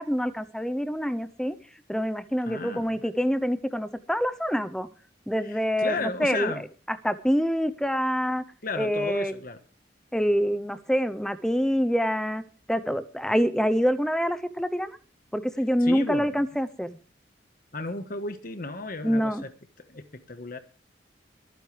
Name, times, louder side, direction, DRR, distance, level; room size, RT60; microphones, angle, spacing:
voice 1, 0.0-1.6 1.9-4.9 5.3-6.5 6.9-8.4 8.8-9.3 10.1-12.4 12.7-15.0 15.3-17.0 19.0-19.5, equal, 5° left, 0.7 m, -26 dB
voice 2, 2.4-2.9 5.4-6.6 8.6-9.6 15.8-16.4 17.7-19.5 19.9-20.6, left 3 dB, 50° left, 1.4 m, -34 dB
24.0 x 9.3 x 3.3 m
head